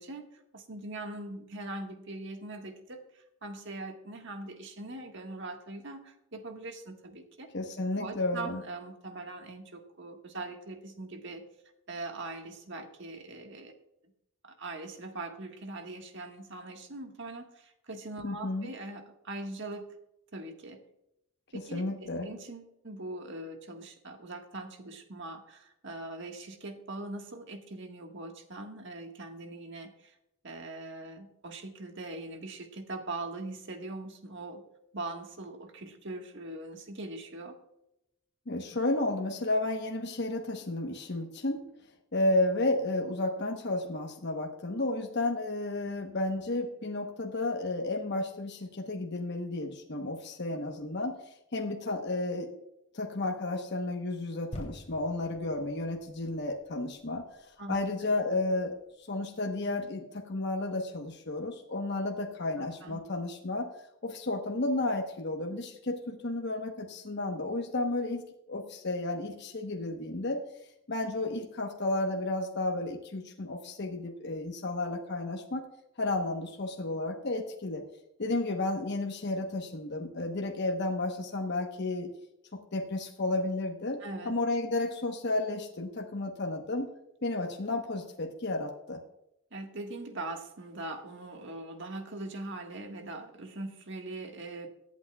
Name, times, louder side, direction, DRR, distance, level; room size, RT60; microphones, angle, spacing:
voice 1, 0.0-7.5 8.0-11.4 11.9-13.7 14.4-19.9 20.3-20.8 21.5-30.1 30.4-34.6 34.9-37.6 57.6-57.9 62.6-63.0 84.0-84.4 89.5-94.7, right 2 dB, 65° right, 4 dB, 1.5 m, -41 dB
voice 2, 7.5-8.6 18.2-18.7 21.5-22.3 38.5-41.7 42.1-52.5 52.9-58.7 59.0-63.7 64.0-70.4 70.9-75.7 76.0-77.8 78.2-82.1 82.7-84.0 84.2-86.9 87.2-89.0, left 2 dB, 60° left, 2 dB, 1.0 m, -32 dB
sound 1, 54.5-58.1 58.7-58.8, equal, 35° left, 3.0 m, -47 dB
23.0 x 8.3 x 2.3 m, 0.84 s
head